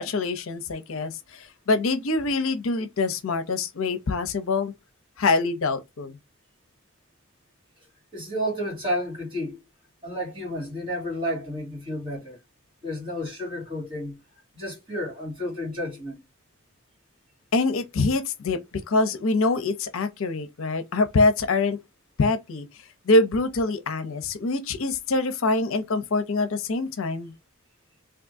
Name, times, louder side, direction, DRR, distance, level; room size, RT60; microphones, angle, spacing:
voice 1, 0.0-4.7 5.2-6.2 17.5-18.6 18.9-21.8 22.2-22.7 23.1-27.3, left 3 dB, 70° left, 0.6 m, -24 dB
voice 2, 8.1-9.6 10.0-12.4 12.8-14.2 14.5-16.2, equal, 25° right, 1.8 m, -31 dB
3.5 x 2.6 x 2.5 m
head